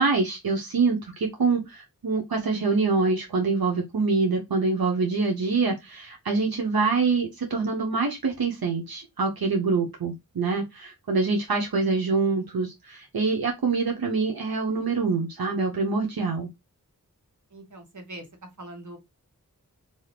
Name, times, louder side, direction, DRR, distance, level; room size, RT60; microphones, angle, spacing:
voice 1, 0.0-16.5, right 4 dB, 85° right, 0.7 m, -25 dB
voice 2, 17.5-18.2 18.6-19.0, right 1 dB, 55° right, 1.1 m, -41 dB
2.7 x 2.4 x 3.2 m
wide cardioid pair, 45°, 35 cm